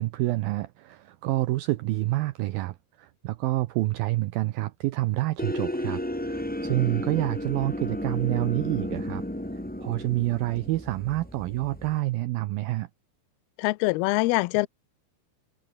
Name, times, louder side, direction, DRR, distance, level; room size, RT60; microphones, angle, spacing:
voice 1, 0.0-9.2 9.5-12.9, right 18 dB, 85° right, 2.1 m, -28 dB
sound 1, 5.4-12.0, equal, 10° left, 0.5 m, -33 dB
voice 2, 13.6-14.7, left 23 dB, 90° left, 2.2 m, -24 dB
omnidirectional pair, 5.1 m